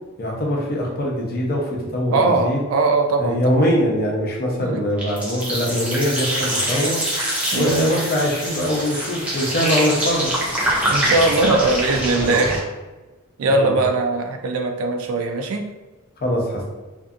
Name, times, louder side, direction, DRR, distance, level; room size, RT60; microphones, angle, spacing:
voice 1, 0.2-2.6 3.2-7.0 7.5-10.3 12.1-12.5 13.5-13.8 16.2-16.7, equal, 45° left, -2 dB, 0.6 m, -22 dB
voice 2, 2.1-3.7 4.6-4.8 7.5-7.8 10.9-12.6 13.4-15.7, right 3 dB, 75° right, 4 dB, 0.4 m, -20 dB
sound 1, 5.0-12.6, equal, 5° right, 0.6 m, -24 dB
2.6 x 2.5 x 2.4 m, 1.2 s
head